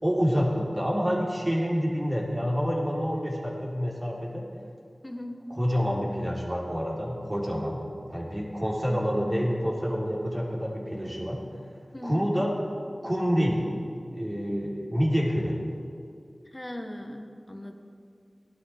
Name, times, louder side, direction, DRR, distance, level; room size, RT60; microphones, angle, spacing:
voice 1, 0.0-4.5 5.5-7.8 8.1-11.4 12.0-12.5 13.0-13.6 14.1-15.6, equal, 30° right, -5 dB, 3.8 m, -27 dB
voice 2, 5.0-5.4 11.9-12.2 16.5-17.8, left 1 dB, 20° left, 3 dB, 1.4 m, -38 dB
19.0 x 12.0 x 3.6 m, 2.4 s
wide cardioid pair, 45°, 0 cm